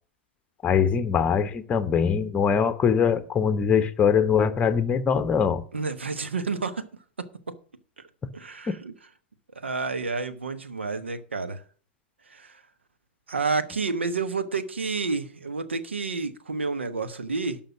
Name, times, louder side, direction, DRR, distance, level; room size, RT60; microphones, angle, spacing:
voice 1, 0.6-5.6 8.7-8.8, left 7 dB, 20° left, 1.0 m, -22 dB
voice 2, 5.7-6.9 7.2-7.6 8.3-8.9 9.5-11.6 12.3-12.6 13.3-17.6, right 4 dB, 80° right, 1.1 m, -30 dB
12.0 x 5.6 x 7.2 m
figure-of-eight pair, 100°, 6 cm